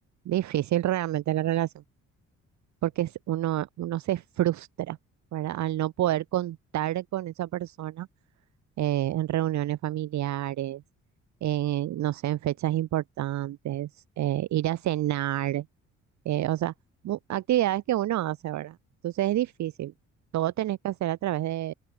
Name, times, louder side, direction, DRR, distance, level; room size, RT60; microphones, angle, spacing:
voice 1, 0.2-1.8 2.8-5.0 5.3-8.1 8.8-10.8 11.4-15.7 16.2-16.7 17.0-18.8 19.0-19.9 20.3-21.7, right 13 dB, 65° right, 0.9 m, -28 dB
open air
cardioid pair, 90°, 30 cm